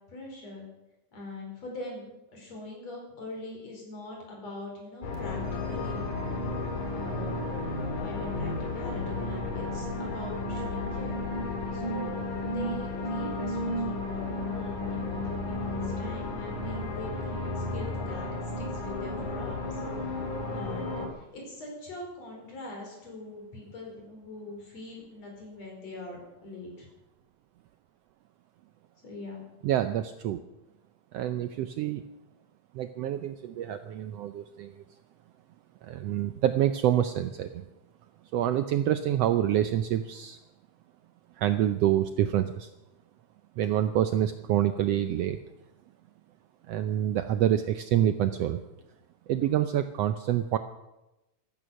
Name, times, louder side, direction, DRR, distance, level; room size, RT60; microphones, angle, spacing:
voice 1, 0.1-0.6 1.1-5.4 5.6-6.1 6.9-7.5 7.8-11.2 11.7-18.3 18.6-19.8 20.0-20.1 20.5-26.9 29.0-29.4, left 2 dB, 60° left, 0 dB, 6.0 m, -42 dB
sound 1, 5.0-21.1, left 2 dB, 85° left, 4.3 m, -33 dB
voice 2, 29.6-30.4 31.1-32.0 32.7-34.8 35.8-37.6 38.3-40.4 41.4-42.7 43.6-45.4 46.7-48.6 49.3-50.6, right 11 dB, 75° right, 10 dB, 1.5 m, -27 dB
15.0 x 14.0 x 6.3 m, 0.97 s
omnidirectional pair, 3.4 m